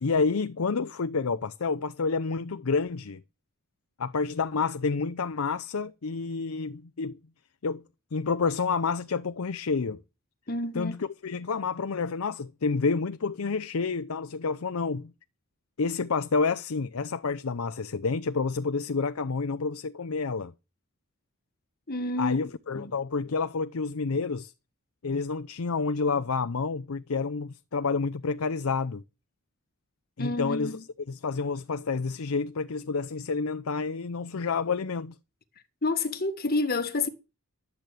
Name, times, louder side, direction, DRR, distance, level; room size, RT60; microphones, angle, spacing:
voice 1, 0.0-3.2 4.0-7.2 7.6-7.8 8.1-10.0 10.7-15.1 15.8-20.5 22.2-24.5 25.0-29.0 30.2-30.8 31.1-35.2, left 4 dB, 75° left, 0.6 m, -29 dB
voice 2, 10.5-11.0 21.9-22.4 22.7-22.9 30.2-30.8 35.8-37.1, left 3 dB, 45° left, 1.5 m, -29 dB
12.0 x 8.6 x 7.6 m
head